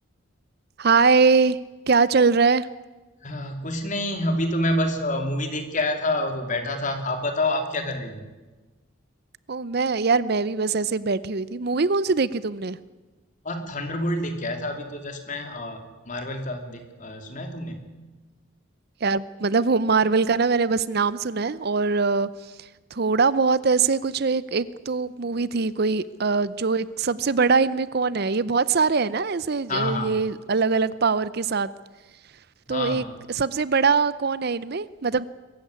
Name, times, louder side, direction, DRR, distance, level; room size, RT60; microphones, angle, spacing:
voice 1, 0.8-1.6 1.9-2.7 9.5-12.8 19.0-22.3 22.9-31.7 32.7-33.0 33.3-35.3, right 4 dB, 50° right, 17 dB, 0.6 m, -22 dB
voice 2, 3.2-8.3 13.4-17.8 29.7-30.2 32.7-33.2, left 1 dB, 40° left, 6 dB, 2.9 m, -28 dB
22.5 x 14.5 x 9.7 m, 1.2 s
head